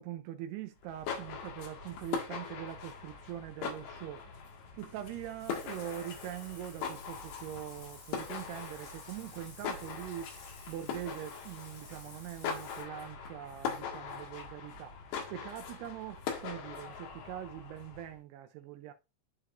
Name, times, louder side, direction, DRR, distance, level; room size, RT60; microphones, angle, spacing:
voice 1, 0.0-4.3 4.8-10.3 10.7-15.0 15.3-18.9, right 12 dB, 85° right, 2.3 m, -43 dB
sound 1, 0.8-18.1, left 6 dB, 75° left, 3.7 m, -42 dB
Bathtub (filling or washing), 4.8-12.8, left 3 dB, 55° left, 4.0 m, -54 dB
12.0 x 4.7 x 2.5 m
omnidirectional pair, 5.3 m